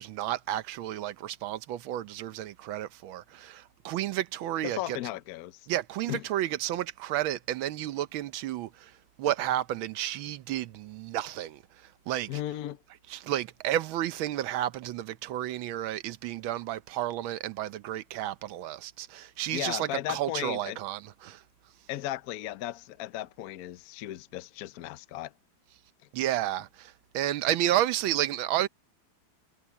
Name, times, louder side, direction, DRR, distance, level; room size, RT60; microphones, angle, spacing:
voice 1, 0.0-5.0 5.7-12.4 13.1-21.4 26.1-28.7, right 13 dB, 90° right, 1.6 m, -31 dB
voice 2, 4.6-5.7 6.1-6.2 12.3-12.8 19.5-20.8 21.9-25.3, left 14 dB, 65° left, 0.9 m, -36 dB
omnidirectional pair, 2.1 m